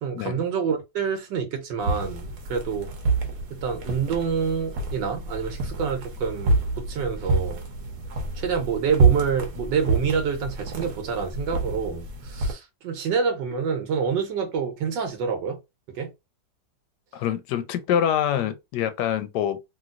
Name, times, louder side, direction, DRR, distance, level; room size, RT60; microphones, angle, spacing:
voice 1, 0.0-2.9 3.5-7.7 8.3-15.6 15.9-16.1, right 6 dB, 75° right, 1.4 m, -27 dB
sound 1, 1.8-12.5, right 3 dB, 60° right, 1.1 m, -27 dB
voice 2, 17.1-19.6, left 9 dB, 75° left, 1.1 m, -25 dB
3.1 x 2.9 x 2.3 m
omnidirectional pair, 2.0 m